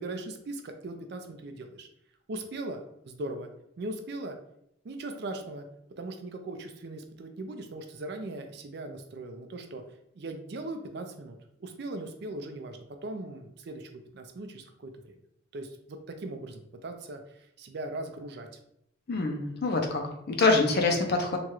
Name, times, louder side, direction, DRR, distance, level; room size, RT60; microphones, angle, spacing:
voice 1, 0.0-1.9 2.3-2.8 3.1-3.5 3.8-4.4 4.8-5.6 6.0-9.8 10.2-13.9 14.1-15.1 15.5-17.2 17.6-18.5, right 2 dB, 55° right, 6 dB, 0.4 m, -39 dB
voice 2, 19.1-20.0 20.3-21.4, left 3 dB, 50° left, 3 dB, 0.5 m, -25 dB
2.9 x 2.3 x 2.9 m, 0.75 s
head